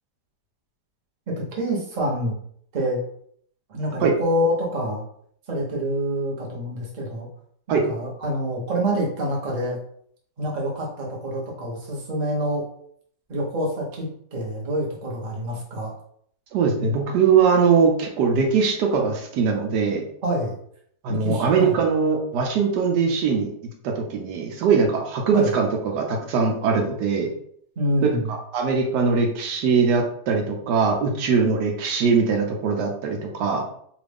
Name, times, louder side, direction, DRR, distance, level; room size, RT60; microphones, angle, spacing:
voice 1, 1.3-2.3 2.7-3.0 3.7-5.0 5.5-7.3 7.7-9.8 10.4-12.6 13.3-15.9 20.2-20.5 21.1-21.7 25.3-25.6 27.8-28.3, equal, 35° right, -3 dB, 0.7 m, -26 dB
voice 2, 16.5-20.0 21.0-23.5 23.8-25.7 25.9-27.3 28.3-33.6, right 5 dB, 80° right, 2 dB, 1.2 m, -21 dB
3.0 x 2.5 x 3.4 m, 0.64 s
omnidirectional pair, 1.9 m